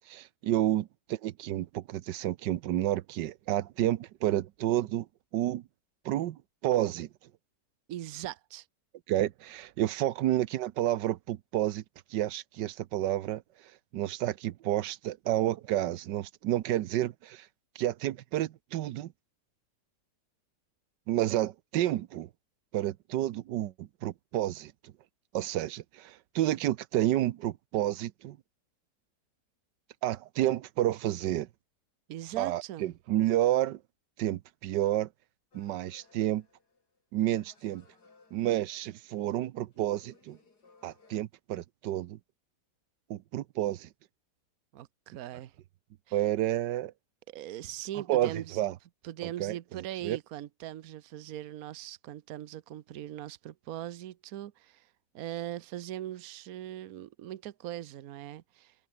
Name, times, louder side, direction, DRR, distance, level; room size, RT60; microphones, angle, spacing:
voice 1, 0.1-5.1 5.3-5.6 6.0-7.1 9.1-11.8 12.1-13.4 13.9-17.5 17.7-19.1 21.1-22.3 22.7-24.9 25.3-28.4 30.0-31.5 32.4-33.8 34.2-35.1 35.5-36.4 37.1-37.8 38.3-40.4 40.8-42.2 43.1-43.9 46.1-46.9 48.1-48.7 49.2-49.5 50.0-50.2, right 13 dB, 85° right, 1.4 m, -30 dB
voice 2, 7.9-8.7 32.1-32.9 44.7-45.5 46.1-46.2 47.3-48.6 49.0-54.9 55.1-58.7, right 12 dB, 60° right, 1.2 m, -40 dB
sound 1, 35.5-37.0 37.3-39.4 39.7-41.2, left 4 dB, 65° left, 4.1 m, -62 dB
open air
omnidirectional pair, 1.9 m